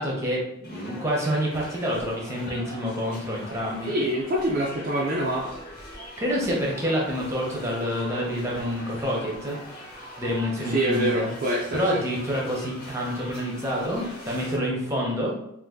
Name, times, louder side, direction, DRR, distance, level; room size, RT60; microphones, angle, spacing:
voice 1, 0.0-3.9 6.2-9.6 10.2-11.3 11.7-15.3, equal, 15° right, -3 dB, 0.7 m, -27 dB
sound 1, 0.6-14.6, equal, 45° left, 0.9 m, -42 dB
voice 2, 3.9-5.5 10.6-12.0, right 1 dB, 40° right, -4 dB, 0.4 m, -25 dB
2.6 x 2.5 x 3.6 m, 0.82 s
head